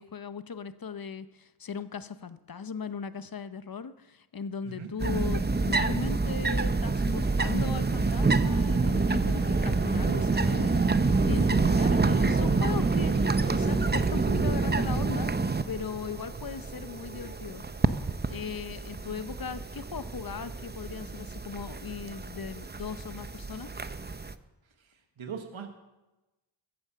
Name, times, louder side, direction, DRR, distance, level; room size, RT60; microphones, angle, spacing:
voice 1, 0.0-13.1 13.5-15.3 15.6-17.6 18.3-23.7, left 6 dB, 45° left, 13 dB, 0.8 m, -38 dB
sound 1, 5.0-24.3, right 3 dB, 20° right, 0.7 m, -27 dB
sound 2, 6.6-18.2, right 2 dB, 45° right, 6.5 m, -48 dB
voice 2, 24.8-25.7, right 6 dB, 70° right, 5 dB, 1.5 m, -41 dB
15.0 x 9.5 x 6.8 m, 1.1 s
wide cardioid pair, 60°, 49 cm